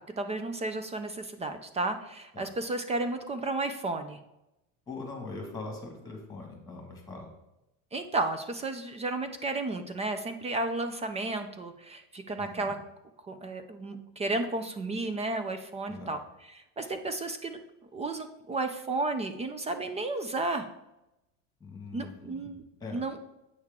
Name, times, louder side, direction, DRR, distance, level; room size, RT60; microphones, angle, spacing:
voice 1, 0.2-4.2 7.9-12.8 13.3-16.2 16.8-17.6 17.9-20.7 21.9-22.6 22.9-23.2, right 2 dB, 15° right, 9 dB, 0.3 m, -33 dB
voice 2, 4.9-7.3 12.4-12.8 15.9-16.2 21.6-22.5 22.8-23.0, left 3 dB, 10° left, 2 dB, 1.9 m, -42 dB
8.4 x 6.4 x 3.6 m, 0.90 s
supercardioid pair, 135°, 40 cm